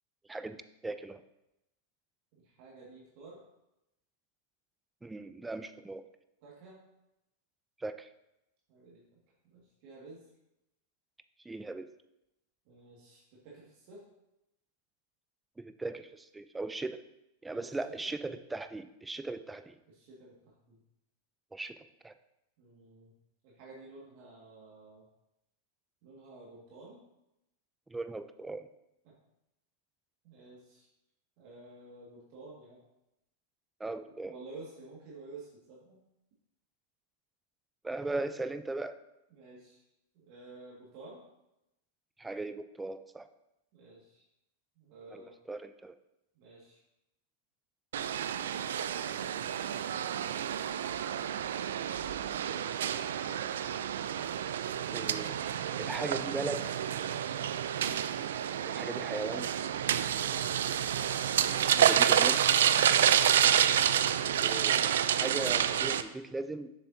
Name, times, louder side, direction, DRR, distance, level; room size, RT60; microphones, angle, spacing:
voice 1, 0.3-1.2 5.0-6.0 7.8-8.1 11.5-11.9 15.6-17.0 17.4-19.8 21.5-22.1 27.9-28.7 33.8-34.3 37.8-39.0 42.2-43.3 45.1-46.0 54.9-55.3 55.8-56.6 58.6-59.5 61.6-62.4 64.4-66.7, right 2 dB, 10° right, 10 dB, 0.4 m, -38 dB
voice 2, 2.3-3.4 6.4-6.8 8.7-9.2 9.4-10.2 12.7-14.0 17.5-18.1 19.9-20.8 22.6-23.1 23.4-25.1 26.0-27.0 29.0-29.1 30.2-30.9 31.4-32.8 34.1-36.0 39.3-39.8 40.1-41.2 43.7-44.2 44.8-45.3 46.4-46.8 52.2-52.7 57.3-57.5 60.3-60.5, right 3 dB, 55° right, -5 dB, 1.9 m, -51 dB
sound 1, 47.9-66.0, right 9 dB, 80° right, 0.3 m, -29 dB
7.0 x 6.7 x 2.8 m, 0.89 s
hypercardioid pair, 110°, 0 cm